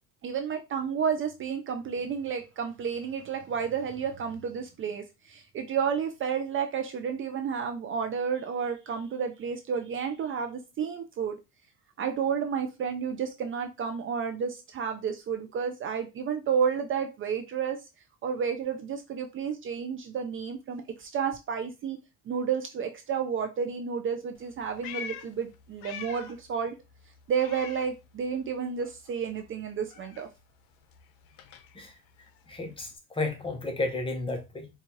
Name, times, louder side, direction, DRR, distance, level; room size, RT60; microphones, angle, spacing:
voice 1, 0.2-11.4 12.0-17.8 18.2-22.0 22.3-26.8 27.3-30.3, right 7 dB, 40° right, 0.4 m, -31 dB
Meow, 24.4-26.5 26.8-28.5 28.8-33.0, left 8 dB, 80° left, 0.7 m, -45 dB
voice 2, 32.5-34.7, left 2 dB, 15° left, 0.7 m, -32 dB
4.6 x 2.4 x 2.7 m
cardioid pair, 125°, 34 cm